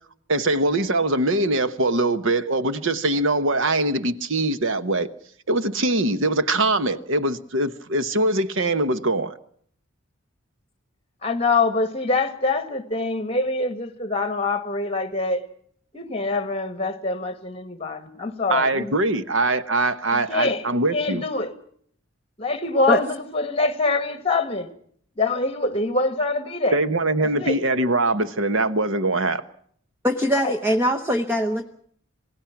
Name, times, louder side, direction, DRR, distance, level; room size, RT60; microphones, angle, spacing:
voice 1, 0.3-5.1 5.5-9.3 18.5-21.2 26.7-29.4, right 2 dB, 70° right, 1.1 m, -22 dB
voice 2, 11.2-15.5 15.9-18.9 20.1-20.6 20.9-21.5 22.4-24.7 25.2-26.8 27.2-27.6 30.4-30.5, left 3 dB, 30° left, 1.8 m, -24 dB
voice 3, 30.0-31.7, equal, 10° right, 0.9 m, -22 dB
27.0 x 18.0 x 5.9 m
head